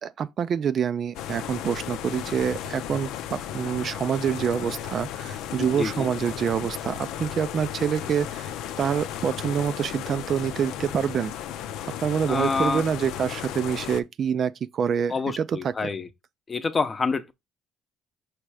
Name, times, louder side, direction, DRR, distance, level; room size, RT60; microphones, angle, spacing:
voice 1, 0.0-8.5 8.8-11.3 12.0-15.7, right 7 dB, 45° right, 0.4 m, -26 dB
sound 1, 1.1-14.0, left 10 dB, 80° left, 0.7 m, -35 dB
voice 2, 5.8-6.1 12.3-12.8 15.1-16.1 16.5-17.3, left 4 dB, 25° left, 0.8 m, -27 dB
6.1 x 3.2 x 4.8 m
cardioid pair, 130°, 0 cm